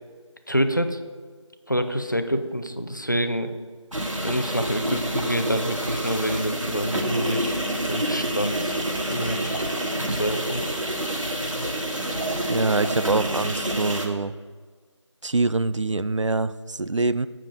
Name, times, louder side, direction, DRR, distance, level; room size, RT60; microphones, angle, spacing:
voice 1, 0.5-1.0 1.7-3.5 4.2-8.8 9.0-9.6 10.1-10.6, equal, 40° left, 8 dB, 0.6 m, -27 dB
sound 1, 3.9-14.1, right 1 dB, 90° right, 1.7 m, -28 dB
voice 2, 12.5-14.3 15.2-17.3, right 3 dB, 70° right, 14 dB, 0.4 m, -24 dB
7.6 x 7.4 x 5.2 m, 1.5 s
figure-of-eight pair, 180°, 16 cm